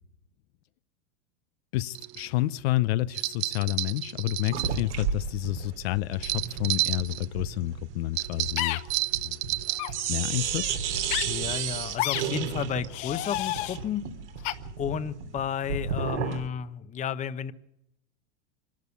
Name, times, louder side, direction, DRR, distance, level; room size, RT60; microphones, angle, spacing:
voice 1, 1.7-8.8 9.2-9.4 10.1-10.7, left 16 dB, 65° left, 16 dB, 0.7 m, -29 dB
sound 1, 1.9-2.3 3.1-4.8 6.1-7.3 8.2-10.0, right 21 dB, 40° right, 0.7 m, -30 dB
sound 2, 4.5-9.6 9.9-16.5, right 7 dB, 85° right, 3.2 m, -33 dB
sound 3, 8.6-8.8 9.7-9.9 11.1-11.2 12.0-12.2 12.9-13.8 14.4-14.5, left 15 dB, 45° left, 1.4 m, -29 dB
voice 2, 11.2-14.1 14.8-17.5, left 8 dB, 20° left, 13 dB, 0.9 m, -32 dB
25.0 x 12.5 x 8.3 m, 0.85 s
supercardioid pair, 130°, 34 cm